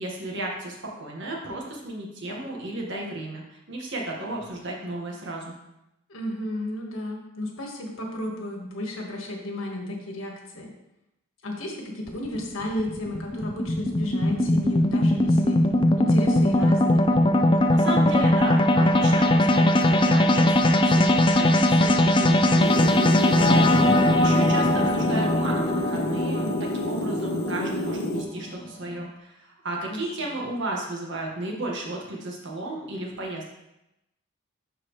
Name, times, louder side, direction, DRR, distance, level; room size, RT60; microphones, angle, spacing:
voice 1, 0.0-5.5 17.7-33.5, right 1 dB, 65° right, -1 dB, 1.6 m, -33 dB
voice 2, 6.1-10.7 11.4-15.6 16.0-17.1 29.9-30.2, left 1 dB, 85° left, 0 dB, 1.6 m, -33 dB
sound 1, 12.1-28.5, left 1 dB, 25° left, 0.5 m, -20 dB
sound 2, 22.6-28.2, left 1 dB, 55° left, 0.9 m, -29 dB
12.0 x 4.4 x 3.2 m, 0.90 s
head